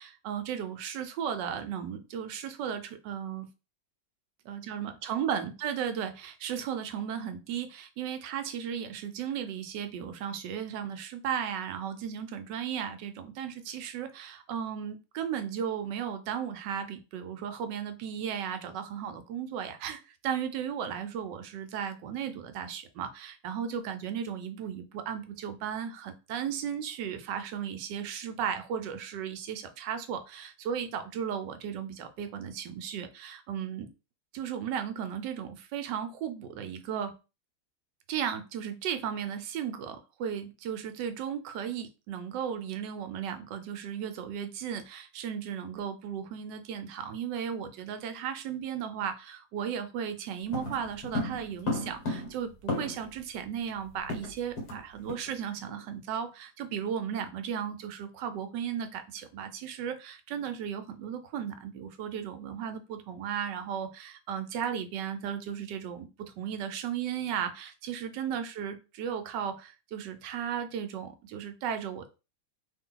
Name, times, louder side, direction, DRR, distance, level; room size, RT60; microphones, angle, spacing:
voice 1, 0.0-3.5 4.5-33.9 34.3-37.2 38.1-72.1, right 8 dB, 75° right, 8 dB, 1.3 m, -35 dB
sound 1, 50.5-53.2 53.5-53.6 53.8-54.8 55.1-55.3 55.7-55.9, left 2 dB, 60° left, 1.9 m, -34 dB
3.5 x 2.7 x 3.8 m, 0.30 s
omnidirectional pair, 2.0 m